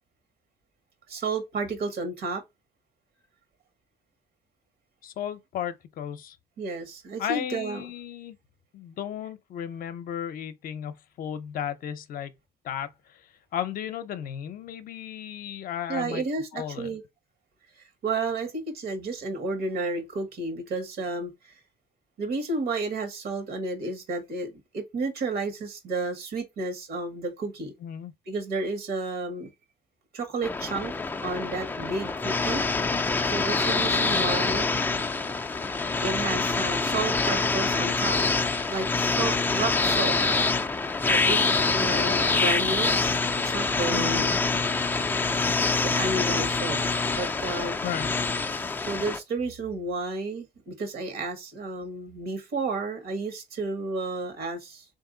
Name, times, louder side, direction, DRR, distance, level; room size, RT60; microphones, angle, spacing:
voice 1, 1.1-2.4 6.6-7.9 15.9-17.0 17.8-21.3 22.2-27.7 28.3-29.5 30.1-30.9 31.2-32.6 33.2-34.7 36.0-38.2 38.7-40.2 41.1-44.3 45.8-46.8 47.2-47.7 48.8-54.8, right 3 dB, 65° right, 1.4 m, -31 dB
voice 2, 5.0-6.4 7.2-8.4 8.7-12.3 12.6-13.2 13.5-16.2 16.5-17.0 27.8-28.1 34.1-34.3 43.9-44.2 47.8-48.1, left 9 dB, 60° left, 0.6 m, -34 dB
sound 1, 30.4-49.2, left 3 dB, 10° left, 0.4 m, -25 dB
3.5 x 2.7 x 3.8 m
cardioid pair, 110°, 17 cm